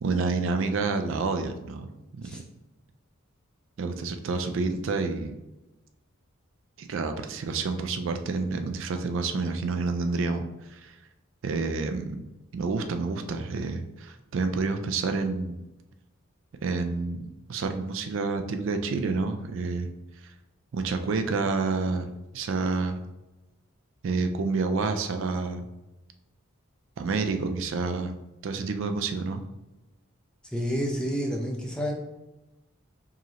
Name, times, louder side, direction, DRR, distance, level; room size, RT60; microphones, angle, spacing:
voice 1, 0.0-1.9 2.2-2.4 3.8-5.4 6.8-11.0 11.4-12.3 12.5-15.6 16.6-19.9 20.2-20.3 20.7-23.0 24.0-25.7 27.0-28.2 28.4-29.4, right 4 dB, 60° right, 7 dB, 0.3 m, -29 dB
voice 2, 30.5-31.9, equal, 5° left, 0 dB, 0.5 m, -29 dB
4.7 x 3.0 x 2.9 m, 1.0 s
head